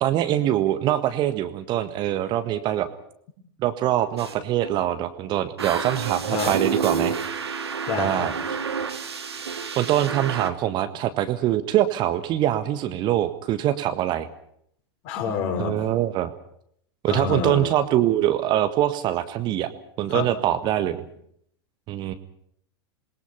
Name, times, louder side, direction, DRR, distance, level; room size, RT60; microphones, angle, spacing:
voice 1, 0.0-2.9 3.6-7.1 8.0-8.3 9.8-14.3 15.6-16.3 17.0-19.7 20.0-21.0 21.9-22.1, right 12 dB, 30° right, 11 dB, 1.6 m, -23 dB
sound 1, 4.2-4.3 4.6-4.9 5.6-10.5, right 6 dB, 70° right, 2.4 m, -29 dB
voice 2, 7.9-8.3 15.0-15.8 17.1-17.7 20.1-20.3, left 6 dB, 40° left, 4 dB, 6.1 m, -27 dB
27.5 x 21.5 x 5.7 m, 0.69 s
figure-of-eight pair, 95°, 14 cm